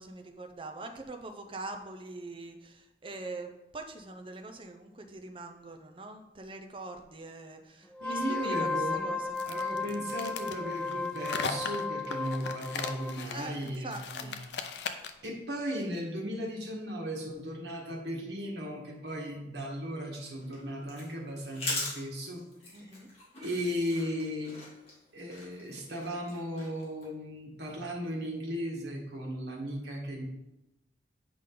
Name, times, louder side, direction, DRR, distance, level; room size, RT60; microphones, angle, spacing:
voice 1, 0.0-9.4 13.3-14.3 22.7-23.1, right 2 dB, 30° right, 5 dB, 0.7 m, -43 dB
Wind instrument woodwind instrument, 7.9-13.2, left 3 dB, 5° left, 0.3 m, -34 dB
voice 2, 8.0-9.2 9.4-14.5 15.2-22.4 23.4-24.6 25.1-30.3, equal, 75° right, -1 dB, 1.7 m, -36 dB
sound 1, 9.4-15.3, left 5 dB, 75° left, 0.6 m, -38 dB
sound 2, 20.1-27.1, left 2 dB, 35° left, 2.4 m, -41 dB
8.4 x 5.1 x 3.9 m, 0.94 s
head